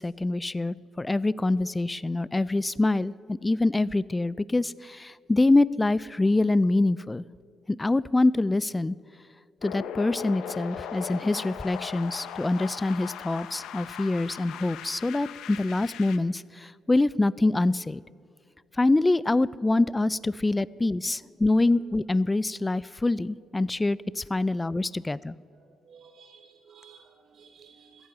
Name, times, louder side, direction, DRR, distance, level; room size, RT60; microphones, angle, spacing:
voice 1, 0.0-7.2 7.7-9.0 9.6-18.0 18.8-25.3, left 2 dB, 15° left, 20 dB, 0.3 m, -25 dB
sound 1, 9.6-16.2, left 8 dB, 85° left, 0.7 m, -39 dB
voice 2, 25.4-28.1, right 6 dB, 55° right, 5 dB, 1.0 m, -55 dB
14.0 x 10.5 x 7.5 m, 2.2 s
cardioid pair, 90°, 0 cm